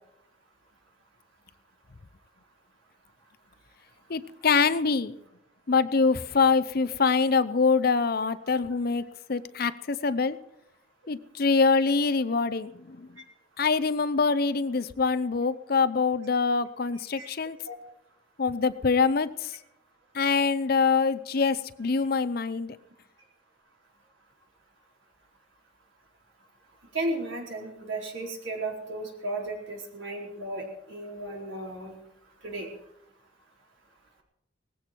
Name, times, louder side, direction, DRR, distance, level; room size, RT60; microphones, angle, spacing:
voice 1, 4.1-5.2 5.7-9.0 9.3-10.4 11.1-13.0 13.6-17.6 18.4-19.3 20.1-22.7, left 4 dB, 50° left, 14 dB, 0.7 m, -24 dB
voice 2, 26.9-32.0 32.4-32.7, right 2 dB, 85° right, -1 dB, 4.3 m, -34 dB
19.0 x 15.5 x 4.6 m, 0.83 s
head